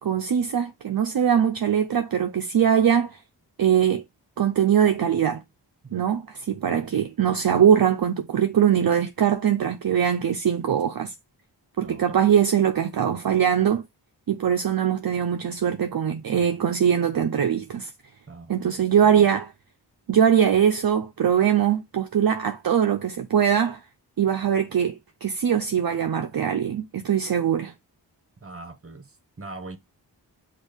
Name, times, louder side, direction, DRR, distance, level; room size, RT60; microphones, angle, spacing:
voice 1, 0.0-3.2 3.6-4.0 4.4-5.4 5.9-11.1 11.8-13.8 14.3-17.9 18.5-19.5 20.1-23.8 24.2-27.7, right 8 dB, 55° right, 0.5 m, -22 dB
voice 2, 11.8-12.2 18.3-19.3 28.4-29.8, right 3 dB, 30° right, 0.9 m, -42 dB
6.1 x 2.4 x 3.4 m
wide cardioid pair, 50°, 44 cm